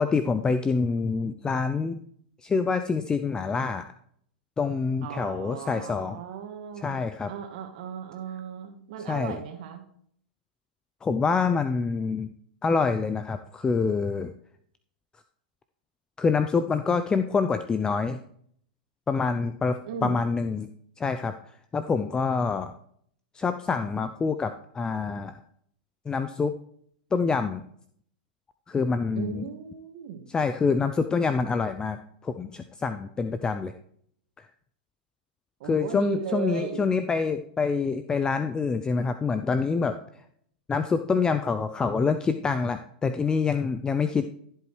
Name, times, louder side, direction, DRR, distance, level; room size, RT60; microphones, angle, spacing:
voice 1, 0.0-2.0 2.4-3.8 4.6-6.2 6.8-7.3 9.1-9.4 11.0-12.3 12.6-14.3 16.2-18.2 19.1-20.7 21.0-21.3 21.7-22.7 23.3-25.4 26.1-26.6 27.1-27.6 28.7-29.4 30.3-33.7 34.4-34.5 35.6-40.2 40.7-44.2, left 5 dB, 15° left, 10 dB, 0.5 m, -26 dB
voice 2, 5.0-7.0 7.3-9.8 19.9-20.2 29.2-30.3 35.6-36.9, right 8 dB, 60° right, 5 dB, 1.9 m, -36 dB
15.0 x 7.9 x 3.3 m, 0.66 s
hypercardioid pair, 105°, 5 cm